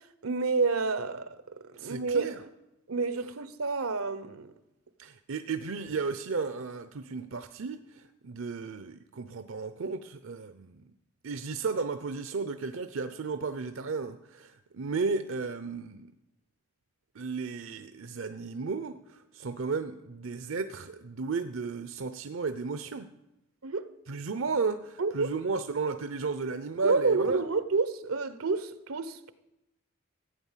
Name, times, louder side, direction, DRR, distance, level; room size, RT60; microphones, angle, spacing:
voice 1, 0.2-1.4 1.6-2.3 2.9-4.5 23.6-23.9 25.0-25.3 26.8-29.3, right 4 dB, 90° right, 1.0 m, -29 dB
voice 2, 1.7-2.4 5.0-10.8 11.2-16.1 17.1-23.1 24.1-27.4, right 4 dB, 70° right, 0.6 m, -34 dB
14.5 x 8.8 x 7.4 m
head